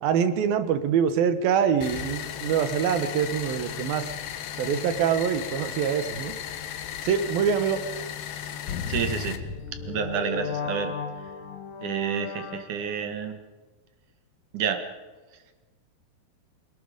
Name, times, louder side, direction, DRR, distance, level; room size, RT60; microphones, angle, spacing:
voice 1, 0.0-4.1 4.6-6.3 7.0-7.8, right 8 dB, 80° right, 11 dB, 3.0 m, -24 dB
sound 1, 1.8-9.4, left 10 dB, 80° left, 3.0 m, -36 dB
sound 2, 8.7-13.1, left 6 dB, 65° left, 2.3 m, -34 dB
voice 2, 8.9-9.4 9.8-10.9 11.2-11.3 11.8-13.4 14.5-14.8 15.3-15.4, right 7 dB, 60° right, 7 dB, 3.0 m, -29 dB
27.0 x 19.5 x 5.2 m, 1.3 s
omnidirectional pair, 4.2 m